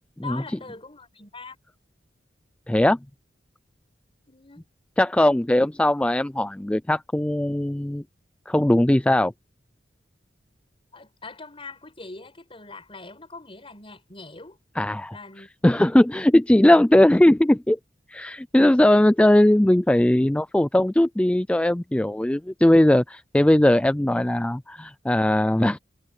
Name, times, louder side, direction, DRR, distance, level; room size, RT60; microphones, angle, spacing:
voice 1, 0.2-1.6 4.3-4.6 10.9-14.6 15.1-15.5, left 3 dB, 30° left, 5.6 m, -42 dB
voice 2, 2.7-3.0 5.0-8.0 8.5-9.3 14.8-15.2 15.6-17.8 18.1-25.8, left 1 dB, 5° left, 0.3 m, -19 dB
head